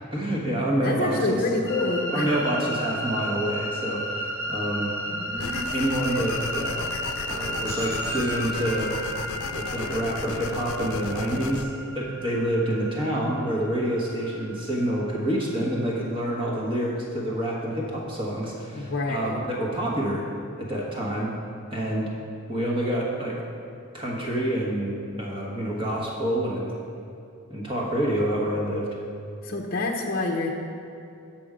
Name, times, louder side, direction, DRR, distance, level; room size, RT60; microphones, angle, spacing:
voice 1, 0.1-1.2 2.1-4.9 5.7-6.8 7.2-9.0 9.4-20.2 20.6-21.3 21.7-22.1 22.5-23.4 23.9-26.8 27.5-28.9, right 1 dB, 25° right, -4 dB, 1.2 m, -27 dB
voice 2, 0.8-2.3 5.1-5.7 18.7-19.5 29.4-30.5, left 2 dB, 45° left, 1 dB, 0.6 m, -27 dB
sound 1, 1.7-16.0, equal, 15° left, 1.3 m, -34 dB
sound 2, 5.4-11.6, left 6 dB, 85° left, 0.4 m, -35 dB
sound 3, 7.7-11.3, equal, 60° right, 1.6 m, -39 dB
7.9 x 6.0 x 5.0 m, 2.6 s
head